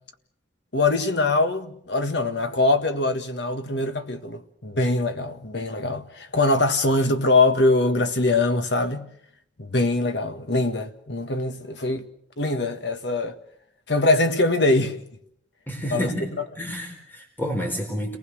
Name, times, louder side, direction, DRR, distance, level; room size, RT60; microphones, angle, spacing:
voice 1, 0.7-9.1 9.6-12.0 12.4-13.4 13.9-15.0 15.9-16.1, left 2 dB, 65° left, 1.7 m, -23 dB
voice 2, 15.7-16.3 16.6-18.2, equal, 10° left, 4.2 m, -29 dB
29.5 x 20.0 x 6.5 m
head